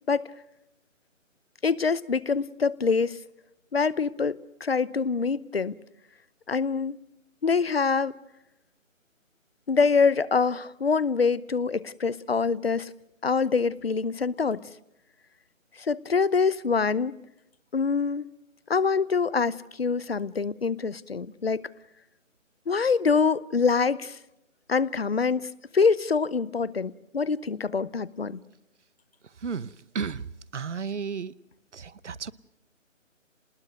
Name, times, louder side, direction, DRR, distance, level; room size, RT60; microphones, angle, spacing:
voice 1, 1.6-3.2 3.7-5.8 6.5-7.0 7.4-8.1 9.7-12.9 13.2-14.6 15.8-17.2 17.7-18.3 18.7-21.7 22.7-24.2 24.7-28.4, left 5 dB, 50° left, 0.8 m, -25 dB
voice 2, 30.5-31.3 31.7-32.3, right 6 dB, 60° right, 0.9 m, -32 dB
27.5 x 20.0 x 6.4 m
figure-of-eight pair, 175°, 39 cm